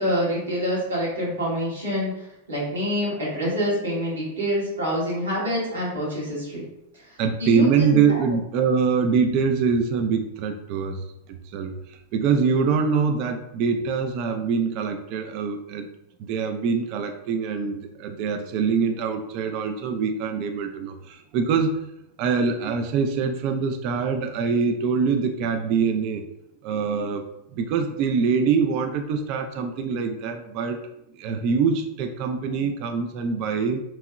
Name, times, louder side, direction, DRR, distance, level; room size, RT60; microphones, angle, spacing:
voice 1, 0.0-6.6 7.4-8.2, equal, 75° right, -7 dB, 1.4 m, -26 dB
voice 2, 7.2-11.0 11.5-15.9 16.3-21.8 22.2-26.2 26.6-30.8 31.1-33.8, right 5 dB, 45° right, 6 dB, 0.3 m, -24 dB
2.9 x 2.7 x 2.3 m, 0.85 s
figure-of-eight pair, 90°, 0 cm